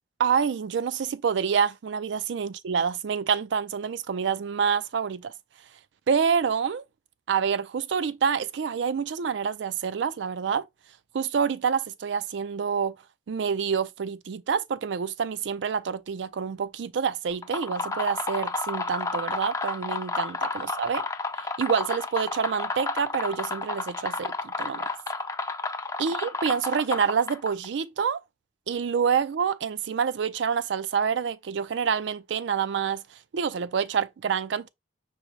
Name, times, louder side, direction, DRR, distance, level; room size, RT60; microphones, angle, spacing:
voice 1, 0.2-5.3 6.1-6.8 7.3-10.7 11.1-13.0 13.3-21.0 21.4-24.9 26.0-28.2 28.7-33.0 33.3-34.7, right 6 dB, 75° right, 0.4 m, -27 dB
sound 1, 17.3-27.7, left 3 dB, 20° left, 0.4 m, -31 dB
5.2 x 2.0 x 4.5 m
head